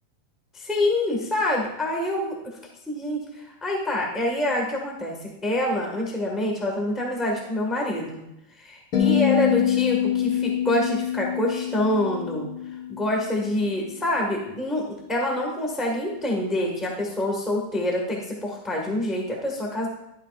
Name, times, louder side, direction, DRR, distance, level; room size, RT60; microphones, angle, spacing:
voice 1, 0.5-2.4 2.9-8.2 8.6-12.5 12.9-19.9, left 1 dB, ahead, -1 dB, 0.6 m, -26 dB
sound 1, 8.9-13.2, left 10 dB, 50° left, 1.2 m, -25 dB
11.5 x 9.0 x 2.5 m, 0.86 s
omnidirectional pair, 3.5 m